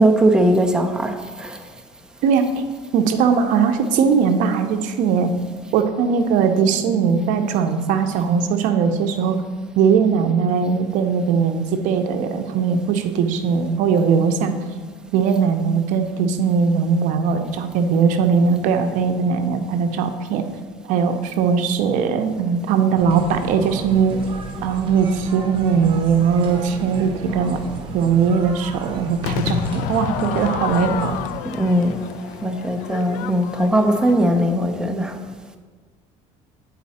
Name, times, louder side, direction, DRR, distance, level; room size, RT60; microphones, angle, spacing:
voice 1, 0.0-1.6 31.5-32.0 32.4-35.2, right 1 dB, 5° right, 3 dB, 0.6 m, -19 dB
voice 2, 2.2-2.6 2.9-5.3 5.7-9.4 9.8-14.6 15.1-20.5 20.9-24.2 24.6-27.6 27.9-31.2, right 6 dB, 65° right, 7 dB, 0.6 m, -19 dB
sound 1, 23.0-31.3, right 3 dB, 40° right, 1.1 m, -34 dB
Crowd / Fireworks, 29.2-34.5, left 10 dB, 75° left, 0.4 m, -29 dB
9.5 x 4.1 x 4.2 m, 1.5 s
cardioid pair, 125°, 14 cm